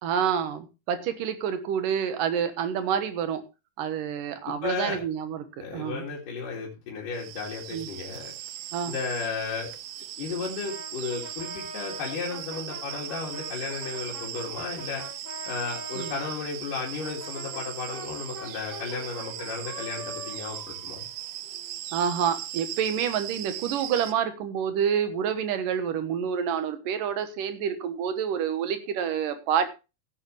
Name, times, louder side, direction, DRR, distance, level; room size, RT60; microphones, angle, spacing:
voice 1, 0.0-3.4 3.8-6.0 7.7-7.9 8.7-9.0 16.0-16.1 21.9-29.7, right 8 dB, 90° right, 9 dB, 2.9 m, -28 dB
voice 2, 4.5-5.0 5.6-8.3 8.9-15.0 15.5-21.0, left 5 dB, 80° left, -3 dB, 3.9 m, -34 dB
sound 1, 7.1-24.1, right 12 dB, 70° right, 1.7 m, -39 dB
Brass instrument, 10.6-16.4 17.0-21.7, left 1 dB, 5° left, 3.7 m, -43 dB
16.0 x 9.0 x 3.2 m, 0.29 s
omnidirectional pair, 3.7 m